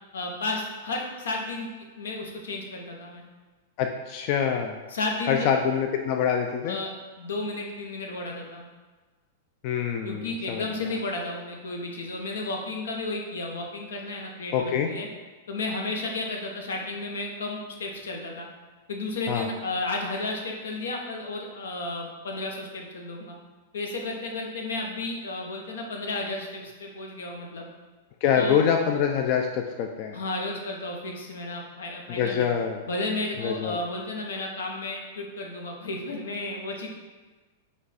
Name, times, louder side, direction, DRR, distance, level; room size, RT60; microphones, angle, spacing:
voice 1, 0.1-1.7 2.0-3.2 4.9-5.5 6.6-6.9 7.2-8.7 10.0-15.1 15.5-18.5 18.9-23.4 23.7-27.7 28.4-28.6 30.1-32.5 32.9-36.9, left 2 dB, 90° left, 1 dB, 0.8 m, -33 dB
voice 2, 3.8-4.8 5.3-6.8 9.6-10.9 14.5-14.9 19.3-19.5 28.2-30.2 32.1-32.8 33.4-33.8, left 7 dB, 50° left, 3 dB, 0.3 m, -25 dB
5.0 x 2.3 x 4.1 m, 1.3 s
hypercardioid pair, 130°, 0 cm